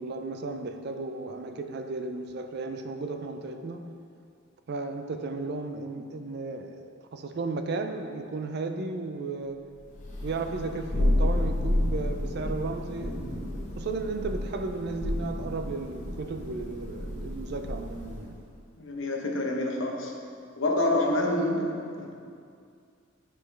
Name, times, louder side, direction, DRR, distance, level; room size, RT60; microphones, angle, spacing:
voice 1, 0.0-3.9 4.7-9.6 10.2-18.4, right 3 dB, 55° right, 7 dB, 0.4 m, -34 dB
Thunder, 9.9-18.4, left 1 dB, 35° left, 0.9 m, -31 dB
voice 2, 18.8-20.1 20.6-22.1, left 1 dB, 70° left, 1 dB, 0.8 m, -27 dB
7.6 x 5.0 x 3.3 m, 2.4 s
head